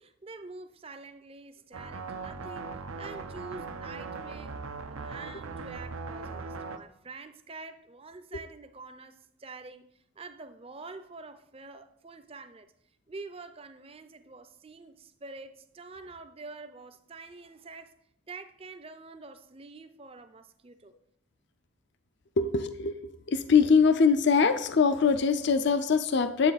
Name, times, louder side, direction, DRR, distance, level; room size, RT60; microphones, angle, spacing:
voice 1, 0.0-4.6 4.9-12.7 13.1-18.0 18.3-20.9, right 3 dB, 25° right, 0.5 m, -46 dB
sound 1, 1.7-6.8, right 4 dB, 85° right, 0.7 m, -39 dB
voice 2, 22.4-26.5, left 5 dB, 55° left, 0.5 m, -23 dB
9.8 x 8.0 x 4.1 m
head